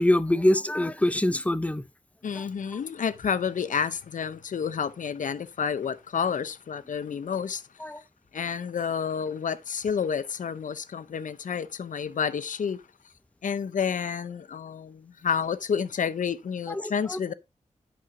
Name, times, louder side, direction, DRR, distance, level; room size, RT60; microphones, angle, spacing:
voice 1, 0.0-1.8 2.4-2.5 7.8-8.0 16.7-17.2, left 1 dB, 10° left, 0.5 m, -24 dB
voice 2, 2.2-7.6 8.3-12.8 13.4-17.3, left 7 dB, 80° left, 0.8 m, -30 dB
11.0 x 8.2 x 2.7 m
wide cardioid pair, 130°, 13 cm